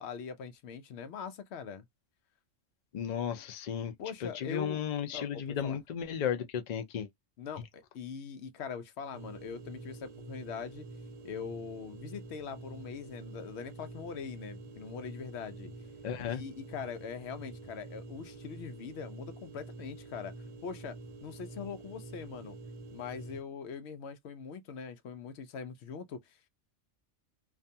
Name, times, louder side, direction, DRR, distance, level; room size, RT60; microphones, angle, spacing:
voice 1, 0.0-1.8 4.0-4.8 5.1-5.8 7.4-10.9 11.2-15.7 16.3-20.3 20.6-22.6 22.9-26.4, left 6 dB, 65° left, 0.8 m, -42 dB
voice 2, 2.9-3.9 4.2-7.1 16.0-16.4, left 8 dB, 85° left, 0.3 m, -34 dB
sound 1, 9.1-23.4, right 3 dB, 80° right, 0.3 m, -47 dB
2.5 x 2.3 x 2.6 m
omnidirectional pair, 1.3 m